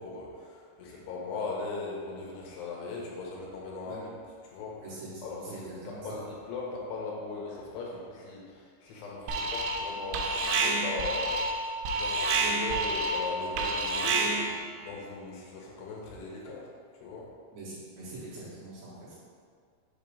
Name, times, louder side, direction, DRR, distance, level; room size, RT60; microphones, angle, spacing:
voice 1, 0.0-4.1 4.4-4.8 5.2-11.4 11.9-16.7 17.0-17.3, left 3 dB, 80° left, -3 dB, 2.8 m, -39 dB
voice 2, 5.4-6.1 17.5-19.1, right 2 dB, 70° right, -9 dB, 3.0 m, -43 dB
Alarm, 9.3-9.9 10.1-14.6, right 3 dB, 85° right, 3.0 m, -28 dB
6.8 x 2.9 x 5.1 m, 2.1 s
omnidirectional pair, 5.1 m